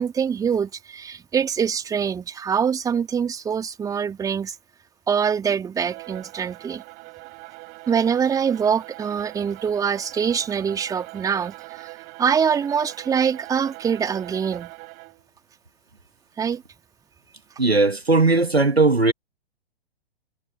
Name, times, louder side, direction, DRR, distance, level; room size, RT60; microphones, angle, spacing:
voice 1, 0.0-4.6 5.1-6.8 7.9-11.9 12.2-14.7 16.4-16.6, right 7 dB, 10° right, 2.1 m, -24 dB
Bowed string instrument, 5.8-15.3, right 28 dB, 30° right, 7.9 m, -42 dB
voice 2, 17.6-19.1, right 3 dB, 85° right, 1.7 m, -18 dB
figure-of-eight pair, 115°, 30 cm